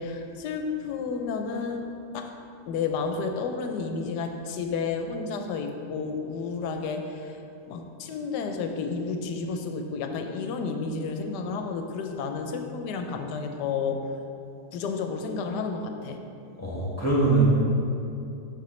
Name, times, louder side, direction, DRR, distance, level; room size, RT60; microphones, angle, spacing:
voice 1, 0.0-2.3 2.7-7.4 7.7-14.1 14.7-16.2, left 4 dB, 80° left, 5 dB, 1.2 m, -31 dB
voice 2, 16.6-17.4, right 3 dB, 10° left, -6 dB, 1.2 m, -23 dB
6.7 x 6.2 x 3.1 m, 2.6 s
omnidirectional pair, 1.8 m